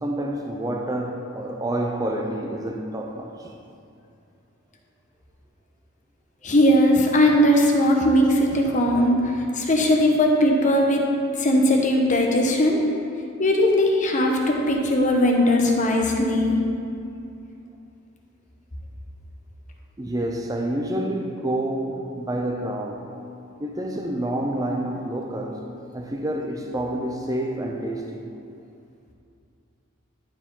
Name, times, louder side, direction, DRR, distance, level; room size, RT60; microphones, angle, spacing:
voice 1, 0.0-3.5 20.0-23.1 23.6-25.6 25.9-28.3, right 1 dB, 15° right, 1 dB, 0.5 m, -28 dB
voice 2, 6.4-11.0 11.4-12.8 13.4-16.6, left 1 dB, 35° left, 0 dB, 1.0 m, -19 dB
13.5 x 4.8 x 3.8 m, 2.6 s
head